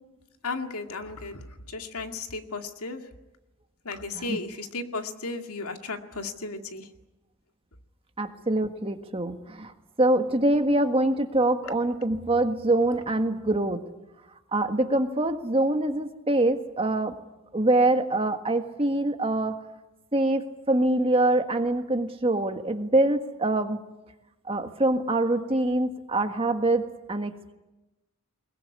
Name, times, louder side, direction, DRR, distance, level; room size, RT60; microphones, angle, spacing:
voice 1, 0.4-3.0 3.8-6.9, left 3 dB, 90° left, 5 dB, 2.2 m, -35 dB
voice 2, 8.2-9.7 10.0-13.8 14.5-17.1 17.5-19.5 20.1-23.8 24.5-27.5, right 2 dB, 25° right, 6 dB, 1.6 m, -24 dB
22.0 x 21.0 x 9.7 m, 1.0 s
head